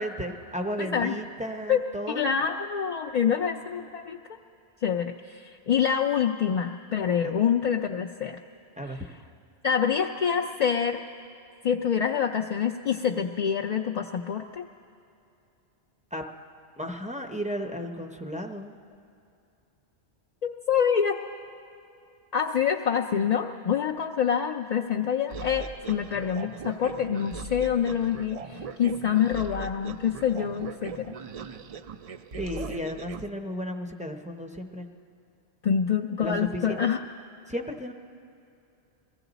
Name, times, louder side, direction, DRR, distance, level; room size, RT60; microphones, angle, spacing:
voice 1, 0.0-2.5 7.2-7.4 8.8-9.1 16.1-16.2 16.8-18.8 32.3-34.9 36.2-36.9 37.5-37.9, equal, 10° right, 4 dB, 0.5 m, -34 dB
voice 2, 0.8-1.2 1.7-1.8 2.1-4.2 4.8-8.4 9.6-11.0 11.6-14.7 20.4-21.2 22.3-31.1 35.6-37.0, left 7 dB, 55° left, 1 dB, 0.4 m, -26 dB
sound 1, 25.3-33.3, right 5 dB, 60° right, 0.3 m, -40 dB
22.5 x 15.0 x 4.0 m, 2.7 s
omnidirectional pair, 1.1 m